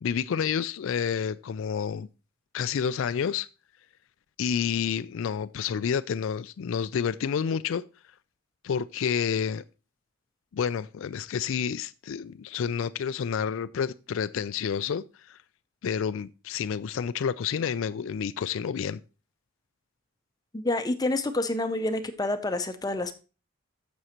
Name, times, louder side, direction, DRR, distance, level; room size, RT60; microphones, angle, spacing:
voice 1, 0.0-2.1 2.5-3.5 4.4-7.8 8.6-9.6 10.5-15.4 15.8-19.0, left 7 dB, 60° left, 0.3 m, -29 dB
voice 2, 20.5-23.1, left 2 dB, 15° left, 0.6 m, -28 dB
14.5 x 6.1 x 2.9 m
head